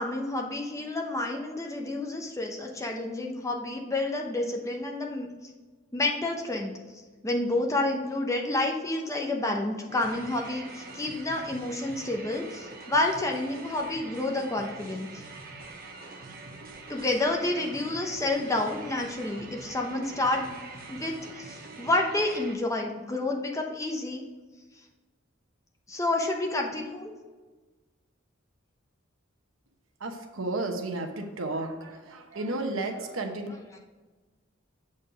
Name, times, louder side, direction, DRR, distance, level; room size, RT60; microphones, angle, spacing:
voice 1, 0.0-5.3 5.9-6.7 7.2-15.1 16.9-20.6 20.9-24.2 25.9-27.1, left 2 dB, 15° left, 1 dB, 0.8 m, -29 dB
sound 1, 9.9-22.6, right 3 dB, 45° right, 0.9 m, -44 dB
voice 2, 30.0-33.5, right 2 dB, 90° right, 5 dB, 0.9 m, -33 dB
7.6 x 4.3 x 5.1 m, 1.3 s
head